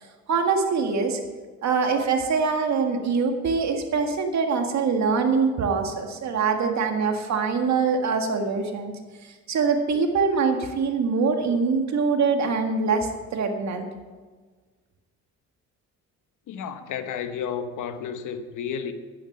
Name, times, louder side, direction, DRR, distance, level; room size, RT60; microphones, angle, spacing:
voice 1, 0.3-1.2 1.6-8.9 9.2-13.9, right 5 dB, 65° right, 1.8 m, -24 dB
voice 2, 16.5-18.9, left 7 dB, 80° left, 1.1 m, -32 dB
11.0 x 9.9 x 5.7 m
cardioid pair, 90°, 30 cm